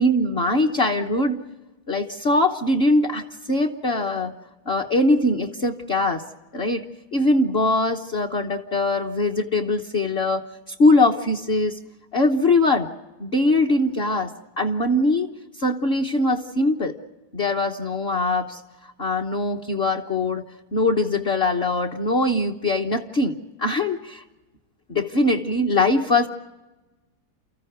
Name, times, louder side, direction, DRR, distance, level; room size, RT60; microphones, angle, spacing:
voice 1, 0.0-1.4 1.9-4.3 4.7-6.2 6.5-11.8 12.1-12.9 13.2-15.3 15.6-17.0 17.3-18.6 19.0-20.4 20.7-24.2 24.9-26.3, left 2 dB, 40° left, 1 dB, 0.9 m, -22 dB
29.5 x 14.5 x 9.3 m, 1.2 s
omnidirectional pair, 2.2 m